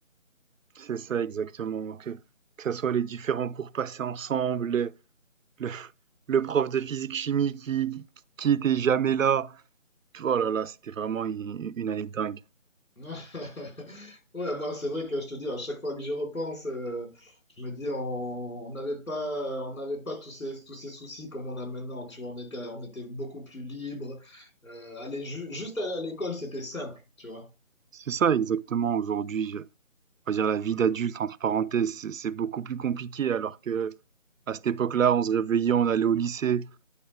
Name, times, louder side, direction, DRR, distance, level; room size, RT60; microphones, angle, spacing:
voice 1, 0.8-2.2 2.6-4.9 5.6-5.9 6.3-8.0 8.4-9.6 10.1-12.4 27.9-29.6 30.3-33.9 34.5-36.7, right 8 dB, 75° right, 0.5 m, -27 dB
voice 2, 13.0-27.5, left 1 dB, 90° left, 3.8 m, -35 dB
9.8 x 4.7 x 3.2 m
figure-of-eight pair, 160°, 40 cm